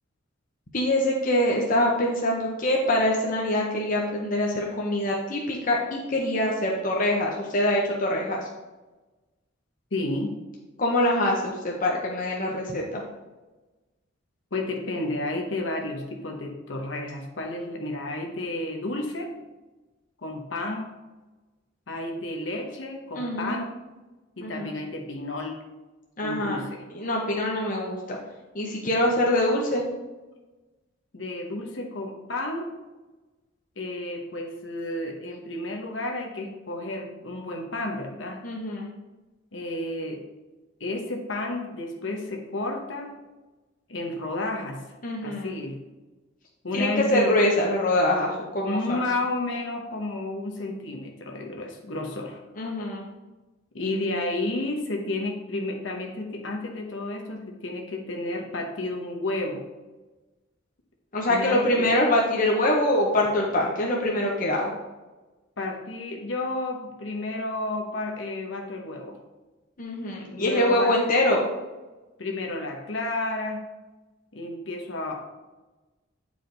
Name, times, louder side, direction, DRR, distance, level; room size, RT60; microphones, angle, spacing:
voice 1, 0.7-8.4 10.8-13.0 23.2-23.6 24.4-24.7 26.2-26.6 26.9-28.2 28.5-29.8 38.4-38.9 45.0-45.5 46.7-49.0 52.6-53.1 61.1-64.7 69.8-71.4, left 1 dB, 45° left, -2 dB, 1.0 m, -24 dB
voice 2, 9.9-10.4 14.5-19.3 20.2-20.9 21.9-23.7 24.4-25.6 26.2-26.8 31.1-32.7 33.8-38.4 39.5-40.2 40.8-43.1 43.9-44.8 45.2-45.8 46.6-47.4 48.6-52.4 53.7-59.6 61.3-61.9 65.6-69.2 70.4-71.0 72.2-73.6 74.3-75.1, left 2 dB, 75° left, 1 dB, 1.1 m, -31 dB
8.7 x 5.0 x 4.0 m, 1.2 s
head